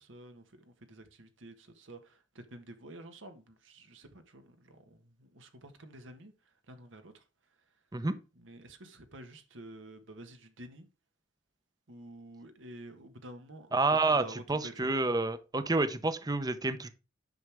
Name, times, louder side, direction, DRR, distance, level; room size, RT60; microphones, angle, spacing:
voice 1, 0.0-6.3 6.7-7.2 8.3-10.9 11.9-14.9, right 1 dB, 80° right, 1.5 m, -50 dB
voice 2, 13.7-16.9, right 3 dB, 20° right, 0.7 m, -29 dB
9.5 x 6.2 x 3.5 m
head